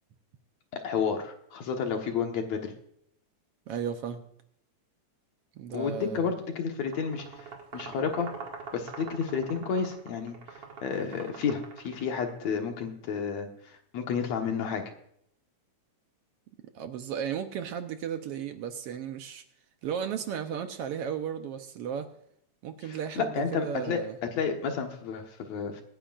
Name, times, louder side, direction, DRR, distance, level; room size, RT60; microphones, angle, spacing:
voice 1, 0.8-2.7 5.7-8.3 8.7-10.4 10.8-14.8 22.9-24.0 24.4-25.8, left 6 dB, 70° left, 3 dB, 2.6 m, -31 dB
voice 2, 3.7-4.2 5.6-6.3 16.7-19.4 19.8-22.1 22.6-24.2, right 8 dB, 70° right, 8 dB, 1.5 m, -35 dB
sound 1, 6.7-12.5, right 5 dB, 55° right, 2.8 m, -44 dB
26.0 x 10.0 x 2.5 m, 0.71 s
omnidirectional pair, 3.3 m